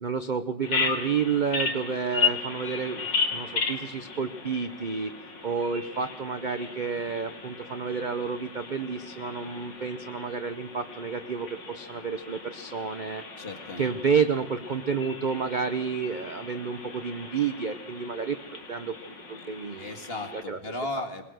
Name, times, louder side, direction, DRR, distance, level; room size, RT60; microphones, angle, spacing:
voice 1, 0.0-3.1 3.3-5.1 5.4-13.2 13.8-18.4 18.7-19.9 20.3-21.0, right 6 dB, 50° right, 9 dB, 0.6 m, -30 dB
Bird vocalization bird call bird song, 0.6-20.4, left 4 dB, 85° left, 3.1 m, -35 dB
voice 2, 13.4-14.0 19.8-21.3, left 2 dB, 35° left, 6 dB, 2.1 m, -36 dB
21.0 x 21.0 x 6.4 m, 0.86 s
omnidirectional pair, 1.9 m